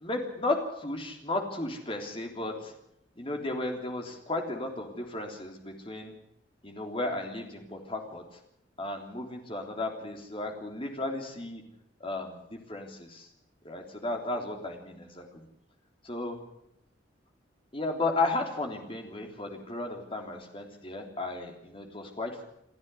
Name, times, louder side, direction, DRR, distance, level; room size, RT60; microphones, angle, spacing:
voice 1, 0.0-2.7 3.2-6.1 6.6-8.2 8.8-11.6 12.0-13.3 13.6-15.5 16.0-16.4 17.7-22.4, left 2 dB, 30° left, 3 dB, 3.3 m, -34 dB
28.5 x 9.5 x 9.8 m, 0.78 s
head